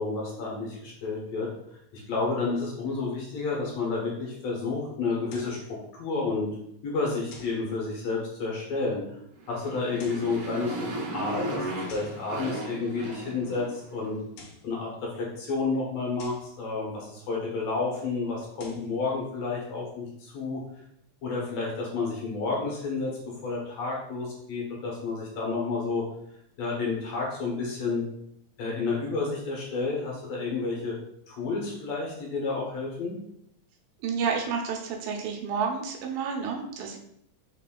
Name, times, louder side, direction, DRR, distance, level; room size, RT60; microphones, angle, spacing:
voice 1, 0.0-1.5 1.9-5.6 6.0-6.5 6.8-9.0 9.5-14.2 14.6-20.6 21.2-26.0 26.6-28.0 28.6-30.9 31.3-33.1, left 3 dB, 65° left, -3 dB, 2.0 m, -30 dB
sound 1, 5.3-5.7 7.3-7.7 9.8-10.4 11.9-12.2 14.2-14.7 16.2-16.5 18.4-18.9, left 3 dB, 85° left, 2.4 m, -48 dB
Motorcycle, 9.4-14.0, right 2 dB, 70° right, 1.3 m, -36 dB
voice 2, 34.0-37.0, right 6 dB, 85° right, 2 dB, 2.3 m, -30 dB
5.0 x 4.0 x 2.2 m, 0.74 s
omnidirectional pair, 3.7 m